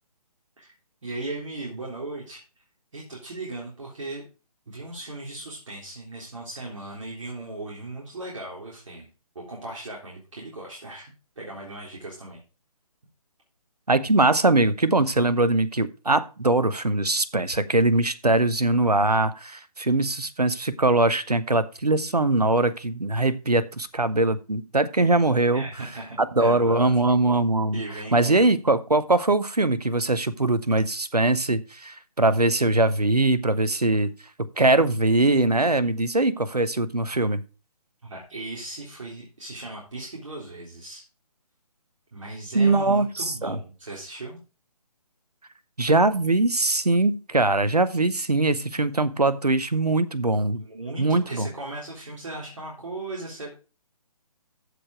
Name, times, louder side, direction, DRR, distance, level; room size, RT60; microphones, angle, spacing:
voice 1, 1.0-2.4 2.9-4.3 4.7-9.1 9.4-12.4 25.5-27.0 27.4-28.5 38.0-41.0 42.1-44.4 50.6-53.5, right 2 dB, 55° right, -3 dB, 3.5 m, -37 dB
voice 2, 13.9-25.6 26.2-27.8 28.1-34.1 34.6-37.4 42.5-43.6 45.8-50.6 51.0-51.5, right 2 dB, 80° right, 15 dB, 1.2 m, -22 dB
14.5 x 5.2 x 4.7 m, 0.32 s
figure-of-eight pair, 145°, 20 cm